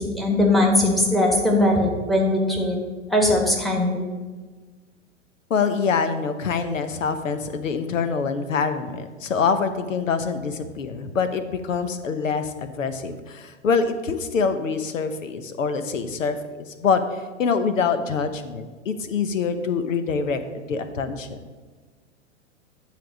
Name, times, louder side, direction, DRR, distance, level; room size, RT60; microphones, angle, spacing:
voice 1, 0.0-2.8 3.1-4.0, left 1 dB, ahead, 0 dB, 1.4 m, -20 dB
voice 2, 5.5-21.4, left 5 dB, 90° left, 10 dB, 0.8 m, -25 dB
10.0 x 3.5 x 6.0 m, 1.4 s
hypercardioid pair, 115°, 38 cm